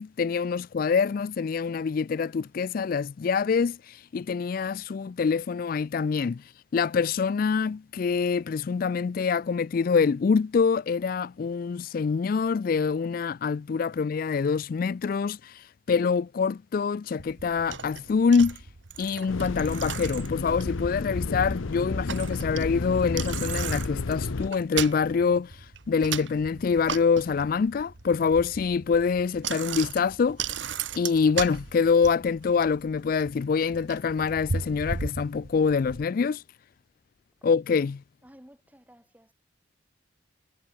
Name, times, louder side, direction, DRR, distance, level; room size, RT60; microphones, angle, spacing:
voice 1, 0.0-18.6 19.0-30.6 31.0-36.4 37.4-38.0, left 5 dB, 45° left, 0.3 m, -25 dB
Bicycle, 17.2-36.0, right 6 dB, 65° right, 1.3 m, -37 dB
sound 1, 19.3-24.5, left 3 dB, 85° left, 0.9 m, -31 dB
voice 2, 38.2-39.3, equal, 10° right, 4.2 m, -54 dB
head